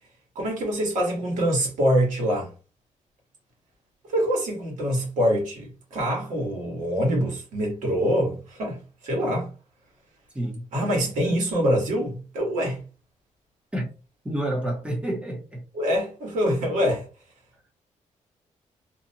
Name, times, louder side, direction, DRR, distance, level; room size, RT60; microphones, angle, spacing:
voice 1, 0.3-2.5 4.1-9.5 10.7-12.8 15.7-17.0, equal, 80° right, 1.3 m, -25 dB
voice 2, 10.3-10.7 11.0-11.1 13.7-13.9 14.2-15.6, right 1 dB, 10° right, 0.7 m, -29 dB
2.7 x 2.1 x 2.7 m
cardioid pair, 160°, 13 cm